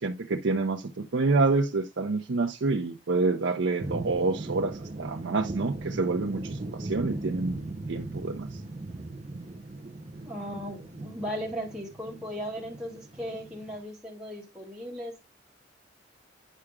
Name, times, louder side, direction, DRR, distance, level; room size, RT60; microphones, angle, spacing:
voice 1, 0.0-7.6 7.9-8.5, right 3 dB, 80° right, 0.6 m, -27 dB
sound 1, 3.8-13.8, right 2 dB, 35° right, 0.6 m, -38 dB
voice 2, 10.2-15.2, equal, 5° right, 2.2 m, -37 dB
10.0 x 4.8 x 2.2 m
head